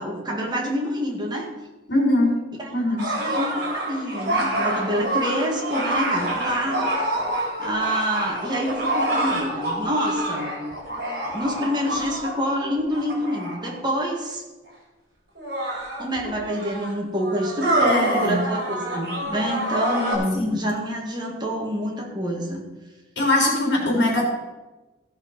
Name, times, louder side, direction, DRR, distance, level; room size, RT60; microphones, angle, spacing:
voice 1, 0.0-1.5 2.6-2.7 3.0-6.9 7.6-10.5 11.3-14.4 16.0-22.6, equal, 25° right, -1 dB, 2.2 m, -27 dB
voice 2, 1.9-2.3 2.7-3.1 17.8-18.4 20.4-20.6 23.2-24.3, left 1 dB, 65° left, -1 dB, 3.7 m, -21 dB
sound 1, 3.0-13.8 14.7-14.8 15.4-20.2, right 1 dB, 55° right, 3.8 m, -27 dB
15.5 x 5.6 x 5.5 m, 1.2 s
head